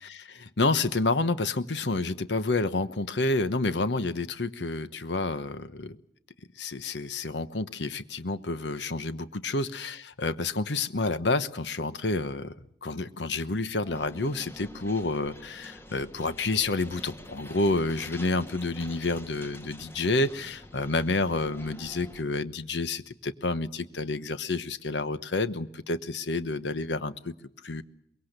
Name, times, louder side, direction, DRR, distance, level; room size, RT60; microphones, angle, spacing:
voice 1, 0.0-6.0 6.6-12.5 12.8-27.3 27.6-27.8, left 3 dB, 85° left, 13 dB, 1.1 m, -29 dB
sound 1, 13.8-22.2, left 1 dB, 15° left, 1.5 m, -47 dB
23.5 x 21.5 x 6.7 m, 0.74 s
head